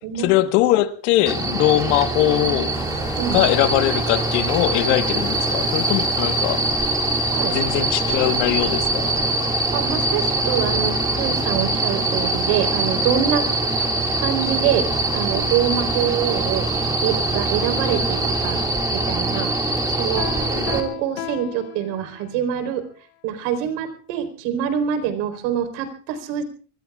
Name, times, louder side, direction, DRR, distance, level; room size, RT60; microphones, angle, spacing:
voice 1, 0.1-2.8 3.3-6.7 7.5-9.2 20.5-20.7, left 14 dB, 55° left, 1.5 m, -21 dB
sound 1, 1.3-20.8, right 2 dB, 10° right, 2.1 m, -23 dB
sound 2, 2.7-18.7, left 3 dB, 10° left, 2.0 m, -38 dB
voice 2, 9.7-13.5 13.8-13.9 14.2-14.9 15.1-16.7 17.0-18.6 18.9-20.3 20.7-22.8 23.2-26.4, right 9 dB, 55° right, 4.1 m, -25 dB
Piano, 20.2-22.5, left 9 dB, 85° left, 1.3 m, -34 dB
25.5 x 22.5 x 2.4 m
supercardioid pair, 170°, 44 cm